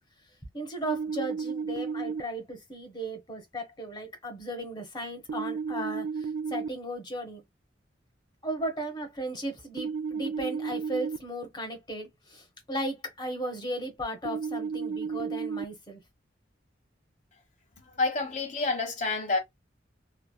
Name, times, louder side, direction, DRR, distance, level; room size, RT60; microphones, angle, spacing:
voice 1, 0.5-7.4 8.4-16.0, right 1 dB, 20° left, 1.1 m, -36 dB
sound 1, 0.8-2.2 5.3-6.7 9.8-11.2 14.3-15.6, right 5 dB, 80° right, 0.3 m, -33 dB
voice 2, 18.0-19.4, left 3 dB, 40° left, 1.3 m, -28 dB
3.2 x 2.4 x 2.2 m
head